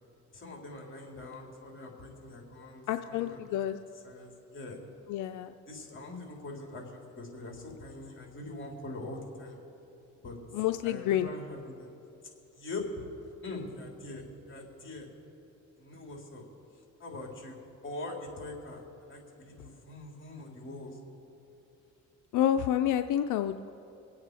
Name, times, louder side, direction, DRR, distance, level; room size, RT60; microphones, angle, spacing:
voice 1, 0.3-4.8 5.7-9.6 10.2-10.4 10.8-11.9 12.5-12.9 13.4-15.1 15.8-16.4 17.0-21.0, left 2 dB, 40° left, 0 dB, 3.7 m, -43 dB
voice 2, 2.9-3.8 5.1-5.5 10.5-11.3 22.3-23.7, left 11 dB, 80° left, 9 dB, 0.5 m, -29 dB
24.5 x 8.5 x 4.8 m, 3.0 s
cardioid pair, 90°, 30 cm